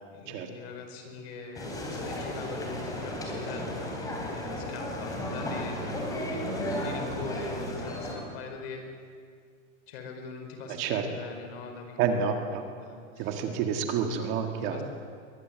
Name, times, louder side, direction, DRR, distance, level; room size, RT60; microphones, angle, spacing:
voice 1, 0.1-5.8 6.2-8.9 9.9-12.5 12.8-13.4 14.6-14.8, left 4 dB, 50° left, 5 dB, 4.9 m, -42 dB
sound 1, 1.5-8.1, left 1 dB, 10° left, 3.6 m, -34 dB
voice 2, 10.7-11.0 12.0-14.8, right 6 dB, 30° right, 5 dB, 1.8 m, -29 dB
22.5 x 20.0 x 9.3 m, 2.1 s
supercardioid pair, 180°, 38 cm